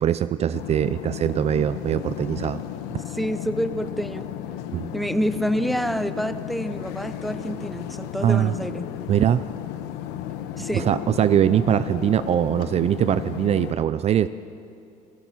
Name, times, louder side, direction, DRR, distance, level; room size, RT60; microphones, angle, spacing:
voice 1, 0.0-2.6 2.9-3.0 4.7-4.9 8.2-8.6 9.1-9.5 10.7-14.3, right 10 dB, 40° right, 14 dB, 0.5 m, -22 dB
sound 1, 0.5-13.7, left 11 dB, 75° left, 1.2 m, -34 dB
voice 2, 3.1-4.3 4.9-8.9 10.6-10.9, equal, ahead, 11 dB, 0.9 m, -27 dB
28.0 x 16.5 x 5.9 m, 2.6 s
supercardioid pair, 105°, 17 cm